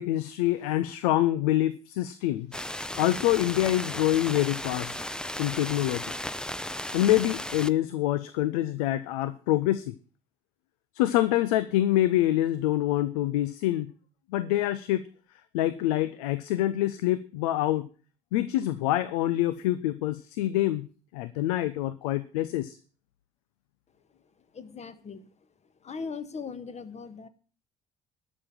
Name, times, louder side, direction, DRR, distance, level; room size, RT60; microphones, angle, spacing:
voice 1, 0.0-2.5 3.0-4.9 5.4-6.1 6.9-9.9 10.9-13.9 14.3-15.1 15.5-17.9 18.3-22.8, left 14 dB, 75° left, 15 dB, 0.7 m, -26 dB
sound 1, 2.5-7.7, left 1 dB, 5° left, 0.7 m, -35 dB
voice 2, 24.5-25.3 25.8-27.3, left 5 dB, 35° left, 11 dB, 1.6 m, -39 dB
12.0 x 6.4 x 8.8 m, 0.38 s
hypercardioid pair, 55°, 19 cm